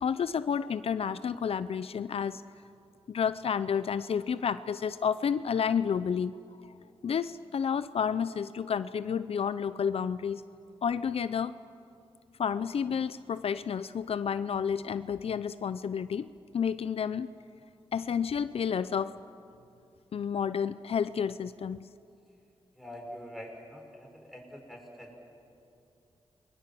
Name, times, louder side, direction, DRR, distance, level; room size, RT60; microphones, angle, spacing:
voice 1, 0.0-2.4 3.1-6.4 7.0-10.4 10.8-11.5 12.4-17.3 17.9-19.2 20.1-21.8, left 7 dB, 70° left, 14 dB, 0.5 m, -30 dB
voice 2, 22.7-25.2, equal, ahead, 0 dB, 6.3 m, -45 dB
29.5 x 22.0 x 7.7 m, 2.6 s
wide cardioid pair, 90°, 10 cm